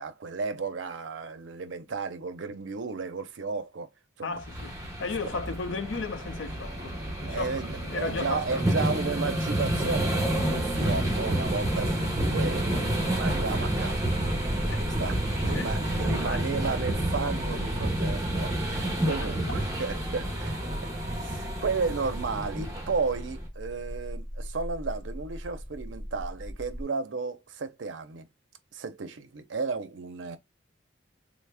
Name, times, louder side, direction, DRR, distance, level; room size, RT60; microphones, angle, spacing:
voice 1, 0.0-3.9 4.2-4.4 5.3-5.4 7.3-14.3 15.0-20.7 21.0-28.3 28.7-30.4, right 4 dB, 75° right, 0.5 m, -33 dB
voice 2, 4.2-7.6 7.8-8.8 14.7-14.9 15.5-15.7 16.2-16.4 19.2-19.6, left 4 dB, 75° left, 0.5 m, -35 dB
sound 1, 4.4-23.5, right 1 dB, 20° right, 0.7 m, -29 dB
sound 2, 22.5-26.8, equal, 5° left, 1.3 m, -40 dB
3.4 x 2.0 x 3.2 m
head